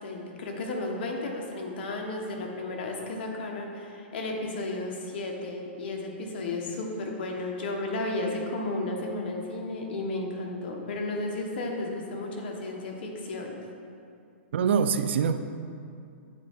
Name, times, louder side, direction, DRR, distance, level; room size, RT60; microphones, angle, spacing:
voice 1, 0.0-13.6, left 2 dB, 60° left, 1 dB, 1.1 m, -33 dB
voice 2, 14.5-15.4, right 6 dB, 75° right, 11 dB, 0.3 m, -24 dB
8.0 x 4.1 x 3.5 m, 2.4 s
hypercardioid pair, 155°, 6 cm